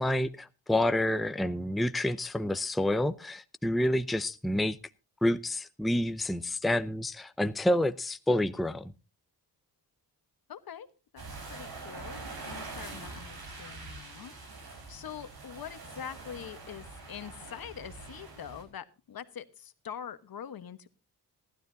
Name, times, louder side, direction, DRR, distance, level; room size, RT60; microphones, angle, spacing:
voice 1, 0.0-4.8 5.2-8.9, left 1 dB, ahead, 0.6 m, -28 dB
voice 2, 10.5-10.9 11.1-20.9, left 8 dB, 65° left, 1.3 m, -44 dB
sound 1, 11.2-18.6, right 3 dB, 70° right, 5.6 m, -44 dB
18.5 x 12.5 x 2.7 m
cardioid pair, 80°, 39 cm